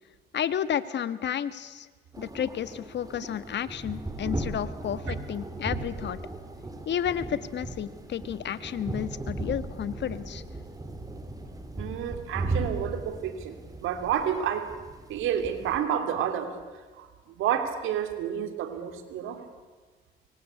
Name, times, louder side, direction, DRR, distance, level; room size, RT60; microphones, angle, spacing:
voice 1, 0.3-1.9 2.2-6.2 6.8-10.4, left 9 dB, 60° left, 14 dB, 1.4 m, -31 dB
sound 1, 2.1-15.8, right 2 dB, 20° right, 3.3 m, -37 dB
voice 2, 11.8-14.7 15.1-16.5 17.0-17.1 17.4-19.4, right 9 dB, 90° right, 8 dB, 3.0 m, -30 dB
25.5 x 23.0 x 8.4 m, 1.4 s
cardioid pair, 90°, 20 cm